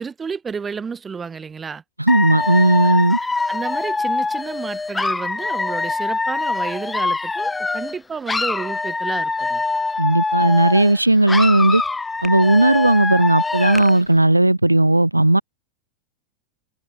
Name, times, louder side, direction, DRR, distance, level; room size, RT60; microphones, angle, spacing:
voice 1, 0.0-1.8 2.8-9.6, right 5 dB, 15° right, 6.2 m, -31 dB
voice 2, 2.0-3.2 10.0-11.8 12.2-15.4, right 1 dB, 85° right, 1.4 m, -15 dB
Dog / Alarm, 2.1-8.0 8.3-11.0 11.3-14.0, left 3 dB, 10° left, 4.1 m, -24 dB
figure-of-eight pair, 90°, 0 cm